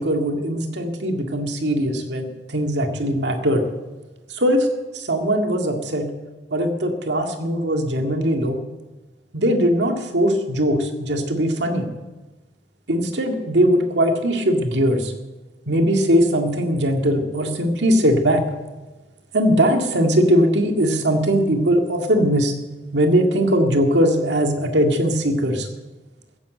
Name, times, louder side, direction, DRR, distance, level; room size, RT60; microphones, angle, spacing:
voice 1, 0.0-3.7 4.3-4.7 4.9-6.1 6.5-8.6 9.3-11.9 12.9-15.1 15.7-18.4 19.3-22.5 22.9-25.7, equal, 75° right, 4 dB, 2.0 m, -20 dB
15.0 x 10.0 x 7.8 m, 1.2 s
head